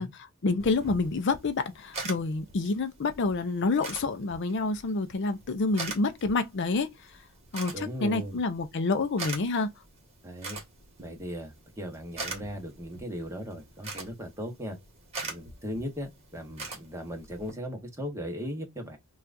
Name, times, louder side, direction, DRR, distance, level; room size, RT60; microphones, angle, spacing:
voice 1, 0.0-7.2 7.5-9.7, left 3 dB, 55° left, 0.5 m, -28 dB
sound 1, 0.6-17.5, right 3 dB, 30° right, 1.5 m, -43 dB
voice 2, 7.7-8.4 10.2-10.6 11.0-14.8 15.2-19.0, equal, 15° right, 1.0 m, -37 dB
5.6 x 2.4 x 2.5 m
head